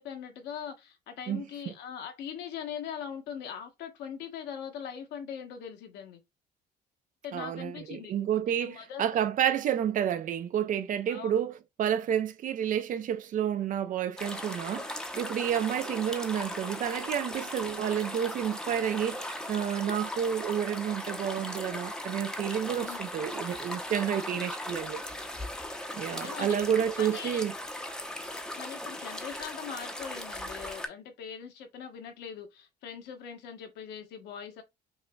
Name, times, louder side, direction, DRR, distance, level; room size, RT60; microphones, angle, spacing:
voice 1, 0.0-6.2 7.2-8.1 8.5-9.1 11.1-11.3 22.8-23.4 24.1-24.6 26.1-26.6 27.0-27.4 28.6-34.6, left 8 dB, 85° left, 1.0 m, -41 dB
voice 2, 7.3-14.9 15.2-25.0 26.0-27.5, right 9 dB, 50° right, 0.5 m, -30 dB
sound 1, 14.2-30.9, left 1 dB, 5° left, 0.6 m, -38 dB
5.3 x 2.6 x 2.2 m
cardioid pair, 110°, 17 cm